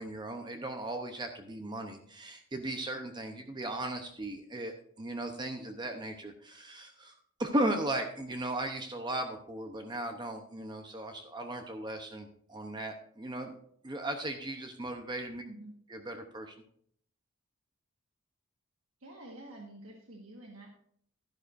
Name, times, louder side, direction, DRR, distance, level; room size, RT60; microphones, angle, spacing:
voice 1, 0.0-13.5 13.8-15.4 15.9-16.5, right 1 dB, 20° right, 5 dB, 0.7 m, -37 dB
voice 2, 19.0-20.7, right 1 dB, 70° right, 0 dB, 1.5 m, -48 dB
12.0 x 11.0 x 2.6 m, 0.65 s
head